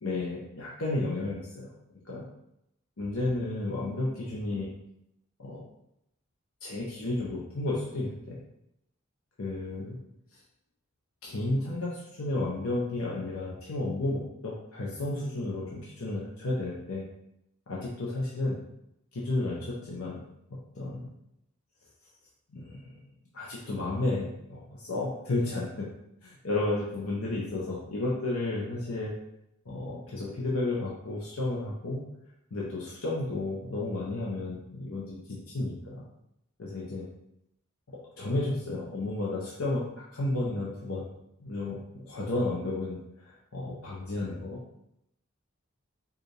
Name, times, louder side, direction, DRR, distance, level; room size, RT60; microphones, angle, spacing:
voice 1, 0.0-1.7 2.0-2.2 3.0-4.7 5.4-5.6 6.6-8.4 9.4-10.0 11.2-17.0 17.7-18.6 19.1-20.2 20.7-21.1 22.5-23.0 23.3-25.9 26.2-29.1 29.6-32.1 32.5-36.0 36.6-37.0 37.9-39.8 40.1-41.1 41.4-44.6, left 2 dB, 90° left, -5 dB, 0.8 m, -32 dB
4.7 x 2.5 x 3.3 m, 0.81 s
head